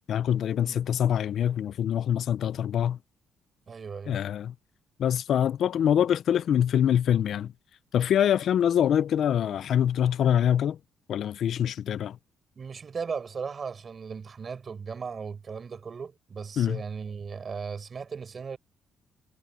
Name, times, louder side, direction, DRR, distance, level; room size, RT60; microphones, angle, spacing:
voice 1, 0.1-3.0 4.1-4.5 5.0-7.5 7.9-10.8 11.1-12.2 16.6-16.8, left 9 dB, 65° left, 0.6 m, -24 dB
voice 2, 3.7-4.2 12.6-18.6, right 5 dB, 40° right, 7.5 m, -37 dB
cardioid pair, 90°, 0 cm